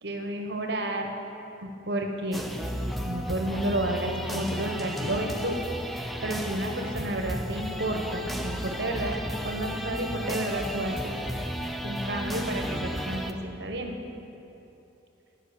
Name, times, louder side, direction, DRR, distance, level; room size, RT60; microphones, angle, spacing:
voice 1, 0.0-1.1 1.6-2.4 3.0-5.6 6.2-9.2 9.4-11.1 11.8-14.0, right 1 dB, 60° right, 3 dB, 1.0 m, -31 dB
sound 1, 2.3-13.3, equal, ahead, 0.3 m, -33 dB
11.0 x 5.5 x 6.6 m, 2.9 s
head